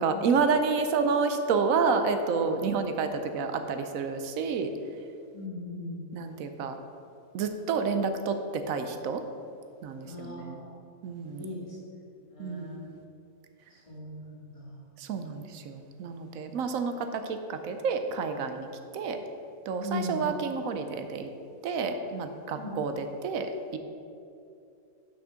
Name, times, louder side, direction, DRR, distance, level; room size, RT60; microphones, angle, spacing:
voice 1, 0.0-4.7 6.1-6.8 7.3-8.4 8.7-9.2 9.8-10.6 11.0-11.5 12.4-13.0 15.0-18.7 18.9-19.2 19.7-21.3 21.6-23.8, right 5 dB, 70° right, 8 dB, 1.0 m, -29 dB
voice 2, 5.3-6.1 10.1-10.7 11.3-11.6 12.3-12.7 13.9-14.8 19.8-20.2 22.6-22.7, left 2 dB, 20° left, -6 dB, 2.0 m, -38 dB
6.4 x 5.9 x 6.3 m, 2.6 s
omnidirectional pair, 1.6 m